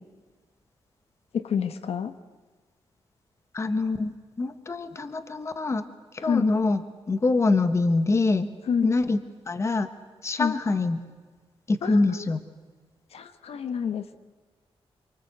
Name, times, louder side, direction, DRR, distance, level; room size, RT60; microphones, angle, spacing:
voice 1, 1.3-2.1 6.2-6.5 8.7-8.9 10.4-10.5 11.8-12.3 13.1-14.2, left 7 dB, 80° left, 10 dB, 1.2 m, -28 dB
voice 2, 3.5-5.8 6.1-6.8 7.1-8.5 8.8-9.2 9.5-9.9 10.2-11.0 11.7-12.4, left 3 dB, 30° left, 10 dB, 1.2 m, -24 dB
27.0 x 24.5 x 8.1 m, 1.4 s
wide cardioid pair, 180°, 10 cm